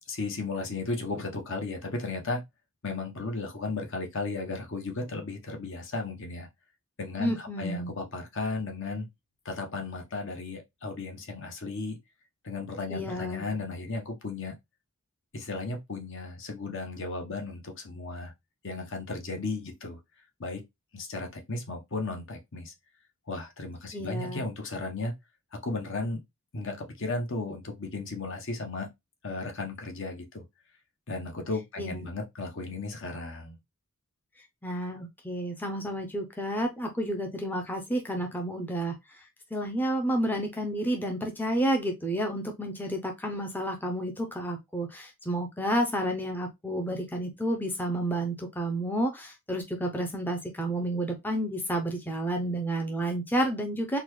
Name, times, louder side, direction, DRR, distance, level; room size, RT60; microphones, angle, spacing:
voice 1, 0.1-2.4 2.8-6.5 7.0-9.1 9.4-12.0 12.4-14.5 15.3-18.3 18.6-20.0 20.4-20.6 20.9-22.7 23.3-25.1 25.5-26.2 26.5-28.9 29.2-30.4 31.1-33.6, left 3 dB, 60° left, 0.9 m, -35 dB
voice 2, 7.2-7.9 12.9-13.4 23.9-24.4 31.8-32.1 34.6-39.2 39.5-54.0, right 1 dB, 10° left, 0.5 m, -30 dB
3.9 x 2.2 x 3.0 m
head